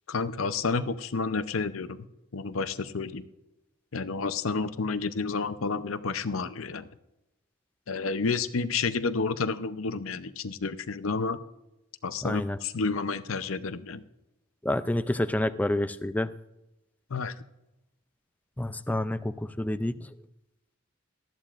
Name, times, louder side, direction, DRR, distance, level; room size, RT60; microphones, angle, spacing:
voice 1, 0.1-2.1 2.3-3.3 3.9-6.9 7.9-11.4 12.0-14.0 17.1-17.3, left 4 dB, 75° left, 12 dB, 0.7 m, -30 dB
voice 2, 12.2-12.6 14.6-16.3 18.6-20.0, left 1 dB, 5° left, 12 dB, 0.4 m, -28 dB
18.5 x 13.5 x 2.5 m, 0.93 s
head